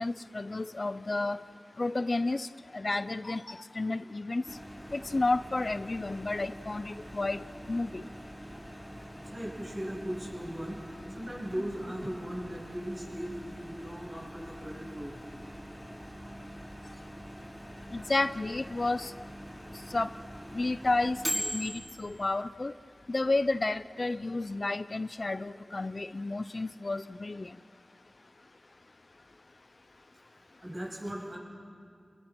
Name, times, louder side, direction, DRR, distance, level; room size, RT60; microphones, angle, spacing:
voice 1, 0.0-1.4 1.8-2.5 2.7-4.4 4.9-7.4 7.7-8.0 17.9-19.1 19.9-20.1 20.5-22.7 23.1-27.5, left 2 dB, 50° left, 14 dB, 0.5 m, -31 dB
Microwave oven, 4.4-22.2, equal, ahead, 4.6 m, -43 dB
voice 2, 9.3-10.8 11.1-15.2 30.6-31.4, equal, 45° right, -3 dB, 7.4 m, -38 dB
29.0 x 21.0 x 6.1 m, 2.3 s
wide cardioid pair, 50°, 0 cm